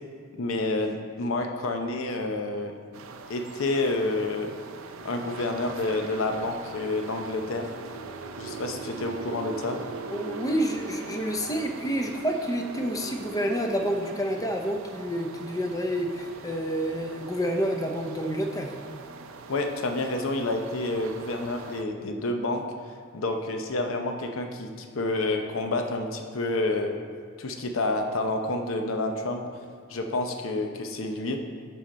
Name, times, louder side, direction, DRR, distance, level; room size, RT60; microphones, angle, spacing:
voice 1, 0.4-2.7 3.3-4.5 5.0-7.7 8.4-9.8 19.5-22.6 23.1-27.0 27.4-29.4 29.9-31.4, left 2 dB, 80° left, 4 dB, 0.7 m, -29 dB
sound 1, 2.9-21.8, right 4 dB, 80° right, 0.5 m, -41 dB
voice 2, 10.1-18.7, equal, 20° left, 3 dB, 0.6 m, -29 dB
11.0 x 3.8 x 4.2 m, 2.1 s
head